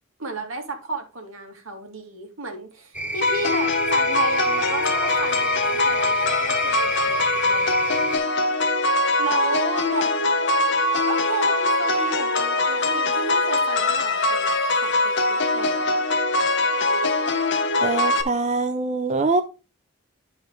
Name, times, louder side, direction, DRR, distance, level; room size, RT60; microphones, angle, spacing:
voice 1, 0.2-7.9 9.2-10.1 11.1-16.0, right 3 dB, 90° right, 2.1 m, -33 dB
sound 1, 2.9-8.2, right 1 dB, 5° right, 0.8 m, -30 dB
sound 2, 3.2-18.2, left 2 dB, 55° left, 0.9 m, -22 dB
voice 2, 17.8-19.4, right 3 dB, 35° right, 0.5 m, -23 dB
11.5 x 4.8 x 3.1 m
head